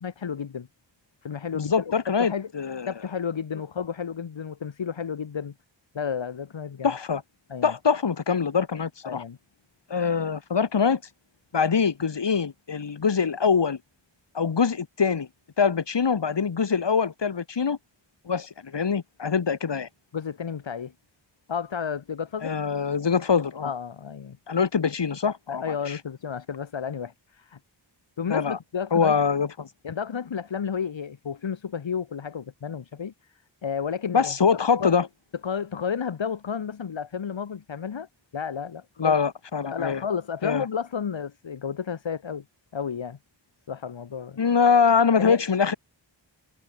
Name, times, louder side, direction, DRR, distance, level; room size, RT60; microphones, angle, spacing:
voice 1, 0.0-0.7 1.2-1.7 2.1-2.5 2.9-5.5 5.9-6.9 7.5-7.7 9.0-9.4 20.1-20.9 21.5-22.5 23.6-24.4 25.5-27.6 28.2-29.2 29.8-33.1 33.6-34.3 34.8-34.9 35.4-38.1 38.3-39.2 39.6-42.4 42.7-43.2 43.7-44.4 45.2-45.4, left 7 dB, 85° left, 3.4 m, -32 dB
voice 2, 1.5-2.9 6.8-7.2 7.6-9.2 9.9-11.0 11.5-13.8 14.3-15.3 15.6-17.8 18.2-19.9 22.4-23.7 24.5-26.0 28.3-28.6 28.9-29.7 34.1-35.1 39.0-40.0 40.4-40.6 44.4-45.7, left 6 dB, 65° left, 3.5 m, -24 dB
cardioid pair, 65°, 45 cm